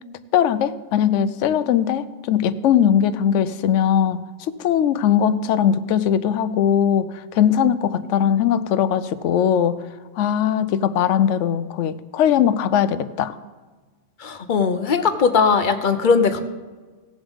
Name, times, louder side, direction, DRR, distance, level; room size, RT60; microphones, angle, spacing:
voice 1, 0.3-7.1 7.3-9.8 10.2-13.4, left 9 dB, 85° left, 14 dB, 0.9 m, -20 dB
voice 2, 14.2-16.4, left 5 dB, 50° left, 9 dB, 0.8 m, -19 dB
17.5 x 7.2 x 3.6 m, 1.4 s
omnidirectional pair, 1.2 m